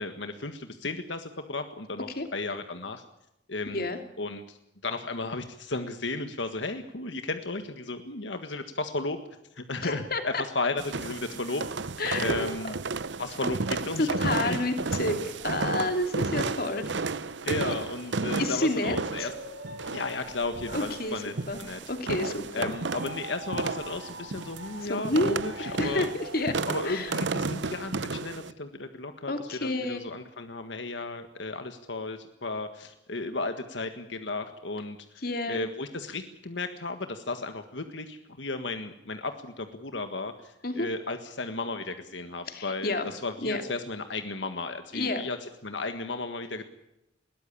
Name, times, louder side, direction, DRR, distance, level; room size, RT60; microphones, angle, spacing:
voice 1, 0.0-3.0 3.5-3.9 4.2-4.6 4.8-9.2 9.5-11.6 12.2-12.8 13.2-14.6 17.4-19.3 19.9-21.3 21.6-21.8 22.5-26.1 26.7-46.7, left 3 dB, 80° left, 7 dB, 1.7 m, -34 dB
voice 2, 9.8-10.4 12.0-12.5 14.0-15.2 15.4-16.9 18.4-19.3 20.7-21.1 21.5-21.6 21.9-22.7 24.9-26.6 26.8-27.1 29.3-30.0 35.2-35.6 40.6-40.9 42.5-43.1 43.4-43.6 44.9-45.2, left 2 dB, 55° left, 6 dB, 2.9 m, -29 dB
sound 1, 10.8-28.5, right 4 dB, 75° right, 0.8 m, -33 dB
sound 2, 19.1-27.6, right 2 dB, 50° right, 7.2 m, -45 dB
21.5 x 18.5 x 8.5 m, 0.86 s
head